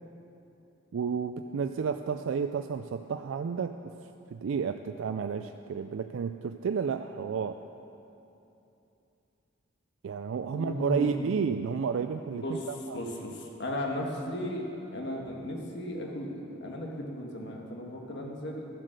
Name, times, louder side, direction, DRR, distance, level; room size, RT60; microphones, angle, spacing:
voice 1, 0.9-3.9 4.3-7.6 10.0-13.0, right 6 dB, 70° right, 8 dB, 0.3 m, -31 dB
voice 2, 10.5-11.3 12.4-16.3 16.6-18.7, left 1 dB, 60° left, 0 dB, 1.4 m, -35 dB
13.5 x 7.5 x 6.5 m, 2.8 s
head